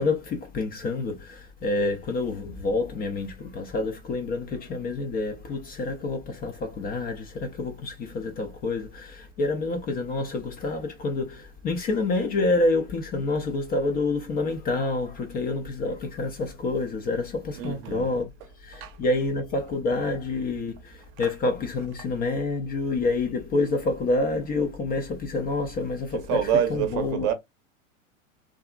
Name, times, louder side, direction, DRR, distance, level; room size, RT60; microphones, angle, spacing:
voice 1, 0.0-18.3 18.6-27.3, left 3 dB, 25° left, 0.4 m, -28 dB
voice 2, 17.5-18.1 18.8-18.9 21.2-21.3 26.1-27.3, right 9 dB, 40° right, 0.7 m, -27 dB
2.7 x 2.4 x 2.3 m
hypercardioid pair, 100°, 40 cm